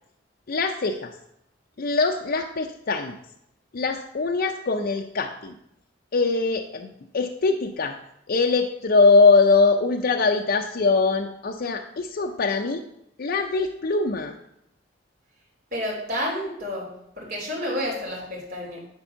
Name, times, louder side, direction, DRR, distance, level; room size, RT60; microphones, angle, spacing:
voice 1, 0.5-1.1 1.8-3.2 3.7-5.6 6.1-8.0 8.3-12.8 13.2-14.3, left 4 dB, 55° left, 3 dB, 0.5 m, -22 dB
voice 2, 15.7-16.9 17.2-18.8, equal, 55° right, -3 dB, 3.2 m, -30 dB
9.6 x 4.5 x 5.6 m, 0.78 s
head